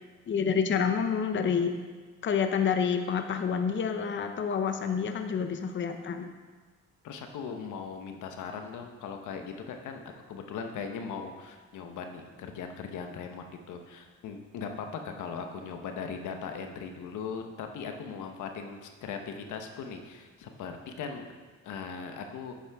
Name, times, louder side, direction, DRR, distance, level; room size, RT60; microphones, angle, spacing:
voice 1, 0.3-1.7 2.2-6.3, left 6 dB, 40° left, 6 dB, 0.7 m, -28 dB
voice 2, 7.0-10.0 10.3-21.3 21.6-22.5, left 6 dB, 80° left, 5 dB, 1.0 m, -39 dB
9.8 x 8.5 x 3.5 m, 1.4 s
cardioid pair, 90°, 30 cm